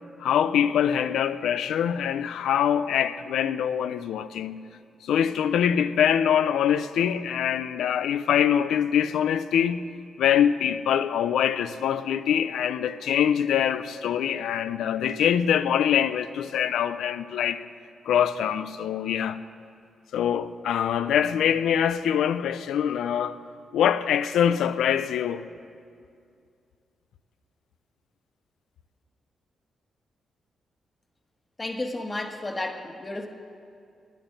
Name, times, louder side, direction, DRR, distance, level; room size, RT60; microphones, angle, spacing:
voice 1, 0.2-4.6 5.0-9.9 10.2-17.6 18.1-19.4 20.1-23.4 23.7-25.4, left 9 dB, 90° left, 0.4 m, -24 dB
voice 2, 31.6-33.3, left 2 dB, 25° left, 1.3 m, -32 dB
9.5 x 9.0 x 9.5 m
cardioid pair, 80°, 0 cm